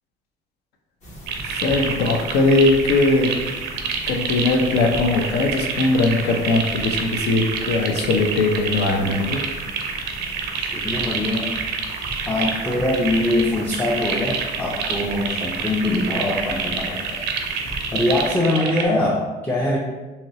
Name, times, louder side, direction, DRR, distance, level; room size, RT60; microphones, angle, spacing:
sound 1, 1.0-18.3, left 1 dB, 45° left, 1.0 m, -38 dB
sound 2, 1.3-18.9, right 6 dB, 85° right, 0.4 m, -28 dB
voice 1, 1.5-3.3 4.1-9.4, left 2 dB, 70° left, 3 dB, 0.5 m, -20 dB
voice 2, 10.6-11.5 12.2-17.2 17.9-19.8, left 1 dB, 10° left, -3 dB, 0.4 m, -23 dB
2.9 x 2.8 x 2.8 m, 1.2 s
cardioid pair, 110°, 17 cm